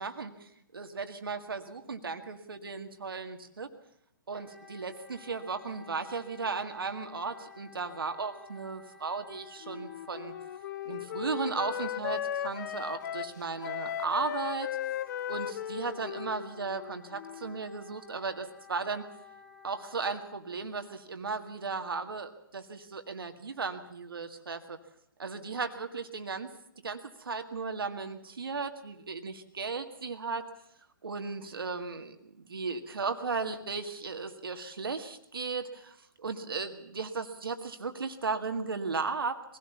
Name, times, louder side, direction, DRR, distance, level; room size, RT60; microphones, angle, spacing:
voice 1, 0.0-3.7 4.3-10.3 10.9-14.7 15.3-19.1 19.6-24.8 25.2-26.5 26.8-30.4 31.0-39.4, right 4 dB, 80° right, 6 dB, 1.9 m, -36 dB
Wind instrument woodwind instrument, 4.3-20.2, left 5 dB, 5° left, 6.2 m, -54 dB
Wind instrument woodwind instrument 2, 9.6-17.6, left 10 dB, 50° left, 0.8 m, -37 dB
22.0 x 17.5 x 7.2 m, 0.73 s
hypercardioid pair, 130°, 12 cm